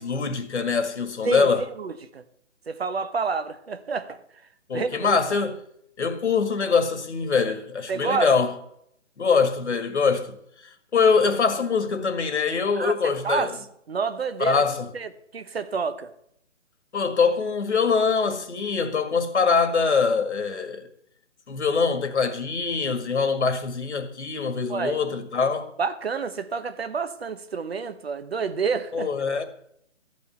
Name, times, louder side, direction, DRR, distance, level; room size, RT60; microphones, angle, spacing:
voice 1, 0.0-1.6 4.7-5.6 6.0-8.6 9.2-10.4 10.6-13.6 14.4-14.9 16.9-20.9 21.5-25.7 28.9-29.4, left 5 dB, 60° left, 1.8 m, -23 dB
voice 2, 1.2-2.2 2.7-4.2 4.7-5.2 7.9-8.3 12.8-13.5 13.9-14.6 14.9-16.1 24.7-25.0 25.8-29.1, right 5 dB, 50° right, 1.0 m, -29 dB
13.0 x 5.5 x 9.0 m
hypercardioid pair, 165°, 38 cm